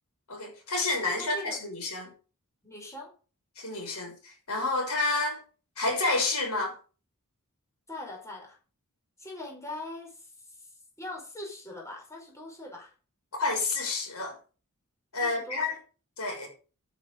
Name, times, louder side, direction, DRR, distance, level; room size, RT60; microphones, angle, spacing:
voice 1, 0.3-2.1 3.6-5.4 5.8-6.8 13.3-14.4 15.1-15.8 16.2-16.5, left 3 dB, 80° left, 6.1 m, -29 dB
voice 2, 1.2-1.6 2.6-3.1 7.9-8.6 9.2-10.7 11.0-12.9 15.2-15.7, left 1 dB, 15° left, 5.0 m, -41 dB
11.0 x 8.8 x 5.2 m
head